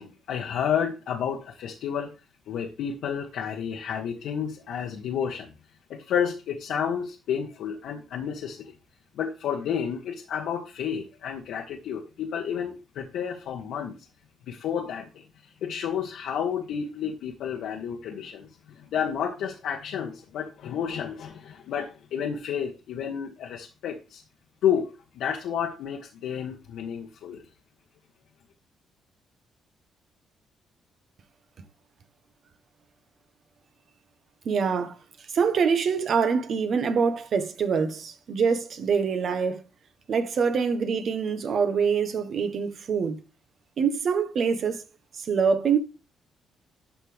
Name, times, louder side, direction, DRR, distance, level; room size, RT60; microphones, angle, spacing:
voice 1, 0.0-2.1 2.5-5.5 5.9-8.7 9.1-13.9 14.5-24.2 24.6-27.4, left 8 dB, 80° left, 1.3 m, -31 dB
voice 2, 34.4-39.6 40.1-43.2 43.8-44.8 45.1-45.8, right 6 dB, 55° right, 1.4 m, -25 dB
12.0 x 5.1 x 3.5 m
cardioid pair, 90°, 0 cm